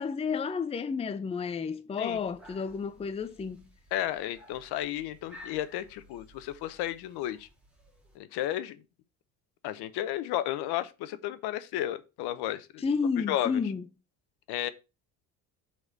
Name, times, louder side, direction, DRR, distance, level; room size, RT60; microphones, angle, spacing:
voice 1, 0.0-3.7 12.8-13.8, left 5 dB, 15° left, 0.5 m, -31 dB
sound 1, 2.1-8.2, left 1 dB, 5° right, 2.3 m, -55 dB
voice 2, 3.9-7.5 8.1-8.8 9.6-12.8 13.3-13.5 14.5-14.7, left 12 dB, 75° left, 0.8 m, -33 dB
4.8 x 4.2 x 5.9 m
cardioid pair, 100°, 40 cm